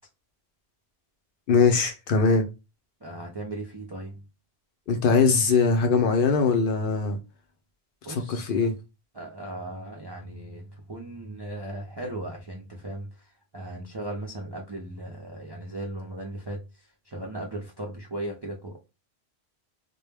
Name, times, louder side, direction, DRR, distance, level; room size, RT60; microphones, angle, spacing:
voice 1, 1.5-2.5 4.9-7.2 8.1-8.7, left 4 dB, 60° left, 0.6 m, -21 dB
voice 2, 3.0-4.3 8.0-8.5 9.1-16.7 17.1-18.8, right 1 dB, 40° right, 0.4 m, -37 dB
2.2 x 2.1 x 3.2 m
omnidirectional pair, 1.1 m